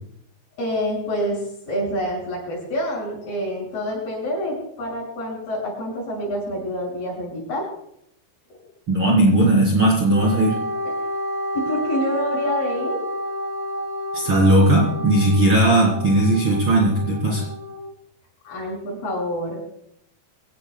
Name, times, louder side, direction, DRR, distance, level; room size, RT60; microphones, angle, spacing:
voice 1, 0.6-7.7 11.5-13.0 18.4-19.6, equal, 60° left, -3 dB, 8.3 m, -27 dB
voice 2, 8.9-10.6 14.1-17.4, right 1 dB, 30° right, -3 dB, 3.9 m, -17 dB
Wind instrument woodwind instrument, 10.1-17.8, equal, 5° right, 6.8 m, -29 dB
23.5 x 17.5 x 2.3 m, 0.72 s
omnidirectional pair, 5.0 m